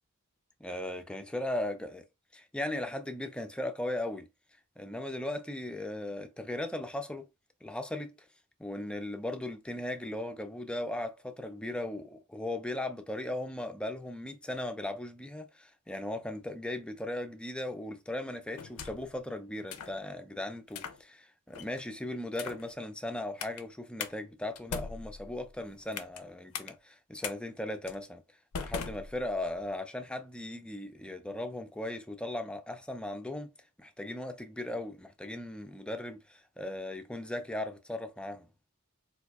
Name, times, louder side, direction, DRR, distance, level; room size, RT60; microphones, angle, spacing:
voice 1, 0.6-2.0 2.3-4.3 4.8-7.3 7.6-8.1 8.6-28.2 28.6-33.5 33.8-38.5, left 1 dB, 5° left, 0.3 m, -37 dB
sound 1, 18.6-19.2 19.7-20.0 20.7-21.0 21.5-21.8 22.3-22.7 23.4-23.6 24.0-24.1 24.6-26.2 26.5-26.7 27.2-27.4 27.9-28.0 28.5-29.6, left 6 dB, 80° left, 0.4 m, -40 dB
4.2 x 2.6 x 2.3 m
head